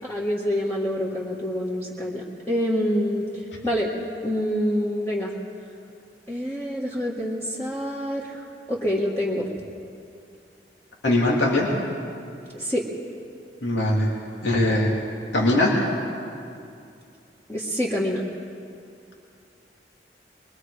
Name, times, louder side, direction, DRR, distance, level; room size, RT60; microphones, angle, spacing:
voice 1, 0.0-3.9 4.2-5.3 6.3-8.4 8.7-9.5 12.5-12.9 17.5-18.2, equal, 15° left, -6 dB, 1.7 m, -26 dB
voice 2, 11.0-11.7 13.6-14.1 14.4-14.9 15.3-15.7, left 1 dB, 85° left, -3 dB, 2.8 m, -20 dB
23.5 x 22.5 x 4.9 m, 2.5 s
head